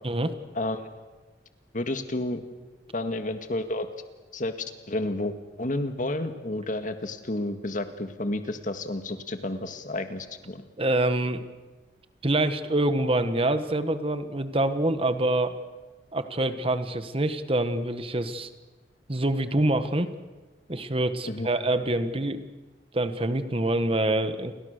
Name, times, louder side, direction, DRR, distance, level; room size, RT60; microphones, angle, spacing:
voice 1, 0.0-0.3 10.8-11.4 12.2-15.5 16.1-18.5 19.1-20.1 20.7-22.4 22.9-24.5, right 1 dB, 30° right, 10 dB, 1.4 m, -26 dB
voice 2, 0.6-0.9 1.7-2.4 2.9-3.9 4.3-4.5 4.9-10.7 21.3-21.5, left 1 dB, 45° left, 8 dB, 1.9 m, -31 dB
29.5 x 22.5 x 6.7 m, 1.3 s
head